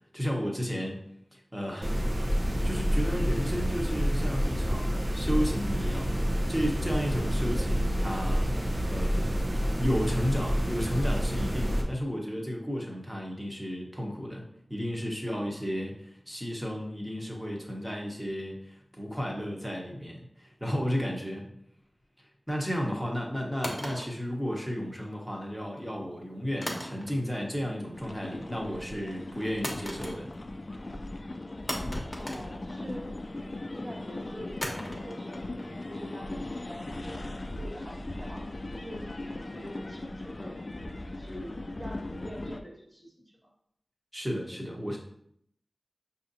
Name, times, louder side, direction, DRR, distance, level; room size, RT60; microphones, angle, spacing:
voice 1, 0.1-1.0 1.3-1.9 2.6-6.1 6.5-8.5 8.9-21.6 22.5-30.3 44.1-45.0, equal, 10° right, -1 dB, 1.1 m, -33 dB
sound 1, 1.8-11.8, equal, 50° right, 0.9 m, -28 dB
voice 2, 7.2-7.6 32.1-33.1 33.7-40.6 41.1-43.4, equal, 35° right, -3 dB, 1.7 m, -45 dB
sound 2, 23.6-25.0 26.6-27.5 27.8-28.2 29.6-30.6 30.9-31.0 31.7-33.2 34.6-37.6, left 1 dB, 30° left, 1.0 m, -39 dB
sound 3, 27.9-42.6, left 2 dB, 50° left, 0.3 m, -39 dB
5.7 x 2.7 x 2.7 m, 0.70 s
cardioid pair, 45°, 0 cm